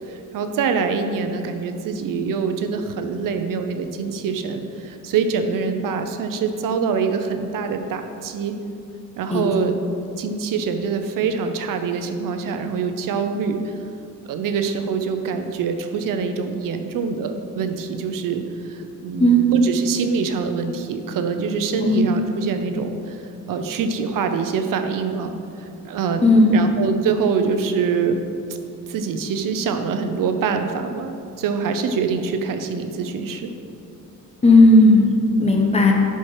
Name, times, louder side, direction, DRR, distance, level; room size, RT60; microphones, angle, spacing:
voice 1, 0.1-8.5 9.2-9.8 10.2-13.7 14.3-18.4 18.7-25.3 25.6-28.2 28.9-33.5, right 5 dB, 80° right, 7 dB, 0.7 m, -25 dB
voice 2, 26.2-26.6 34.4-35.1 35.4-35.9, left 1 dB, 20° left, 1 dB, 0.9 m, -13 dB
11.5 x 4.5 x 4.9 m, 2.5 s
wide cardioid pair, 175°, 32 cm